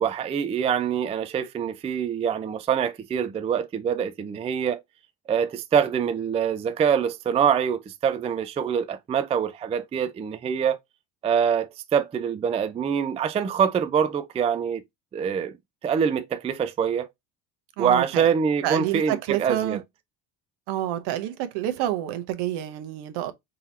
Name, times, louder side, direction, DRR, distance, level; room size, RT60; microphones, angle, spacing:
voice 1, 0.0-4.8 5.3-10.8 11.2-14.8 15.1-15.6 15.8-17.1 17.8-19.8, right 7 dB, 15° right, 0.3 m, -25 dB
voice 2, 17.8-18.3 18.6-19.8 20.7-23.3, right 13 dB, 70° right, 1.0 m, -28 dB
3.9 x 2.8 x 4.3 m
supercardioid pair, 110°, 42 cm